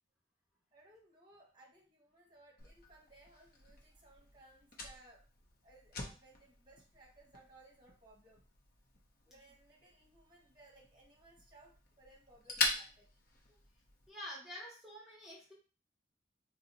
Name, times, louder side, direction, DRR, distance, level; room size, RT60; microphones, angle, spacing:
voice 1, 0.7-8.4 9.2-13.1, right 2 dB, 25° right, -2 dB, 1.0 m, -62 dB
Fire, 2.6-14.1, left 3 dB, 55° left, 0.6 m, -44 dB
voice 2, 14.1-15.5, left 1 dB, ahead, -5 dB, 0.8 m, -48 dB
2.6 x 2.0 x 3.8 m, 0.37 s
head